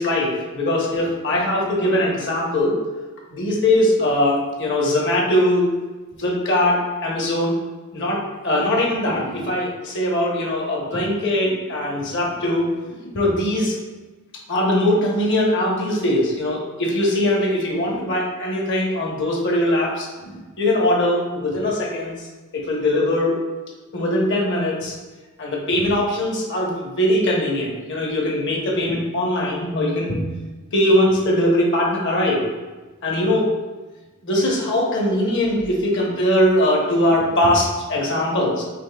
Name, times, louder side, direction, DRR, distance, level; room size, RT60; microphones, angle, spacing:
voice 1, 0.0-2.8 3.3-5.7 6.2-7.5 7.9-13.8 14.5-22.3 22.5-23.4 23.9-24.9 25.4-30.3 30.7-32.5 33.0-33.5 34.2-38.6, left 1 dB, 60° left, -2 dB, 1.0 m, -21 dB
5.3 x 3.2 x 2.3 m, 1.2 s
head